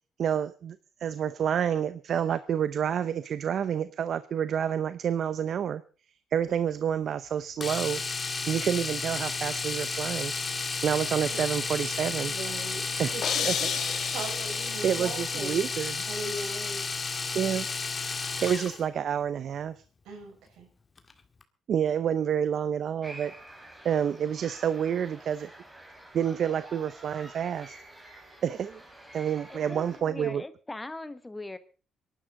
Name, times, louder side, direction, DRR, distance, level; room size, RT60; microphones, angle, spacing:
voice 1, 0.2-0.8 1.0-5.8 6.3-8.0 8.5-10.3 10.8-12.3 13.0-13.2 13.5-13.6 14.8-16.0 17.3-17.7 18.2-19.7 21.7-23.3 23.8-25.5 26.1-27.8 28.4-28.8 29.1-30.4, right 8 dB, 60° right, 14 dB, 0.6 m, -28 dB
Domestic sounds home sounds, 7.6-18.8 21.0-21.1 21.4-21.5, left 4 dB, 30° left, 1.7 m, -32 dB
voice 2, 11.1-11.4 12.3-15.7 16.1-16.8 20.1-20.7, right 3 dB, 90° right, 3 dB, 5.3 m, -39 dB
left crash, 13.2-15.3, left 8 dB, 65° left, 1.6 m, -32 dB
sound 1, 23.0-30.0, right 1 dB, 15° right, 4.4 m, -49 dB
voice 3, 29.5-31.6, left 2 dB, 15° left, 13 dB, 1.1 m, -40 dB
24.0 x 11.5 x 3.8 m, 0.36 s
cardioid pair, 90°, 0 cm